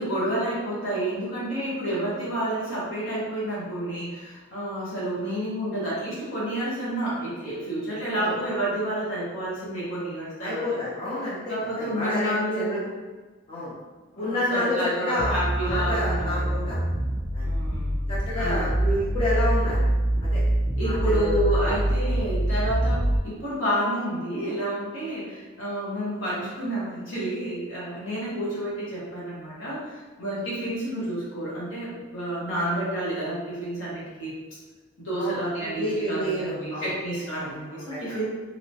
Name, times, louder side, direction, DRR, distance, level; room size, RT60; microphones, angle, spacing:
voice 1, 0.0-10.6 11.5-12.8 14.1-16.4 17.4-18.7 20.7-34.3 35.0-38.2, right 1 dB, 65° left, -8 dB, 1.4 m, -30 dB
voice 2, 10.4-12.8 13.5-13.7 14.2-16.8 17.3-17.4 18.1-19.8 20.2-20.4 20.8-21.7 35.2-36.9 37.3-38.0, left 1 dB, 25° left, -9 dB, 0.7 m, -29 dB
sound 1, 15.2-23.2, right 1 dB, 10° right, 0.4 m, -25 dB
2.9 x 2.9 x 2.8 m, 1.3 s
head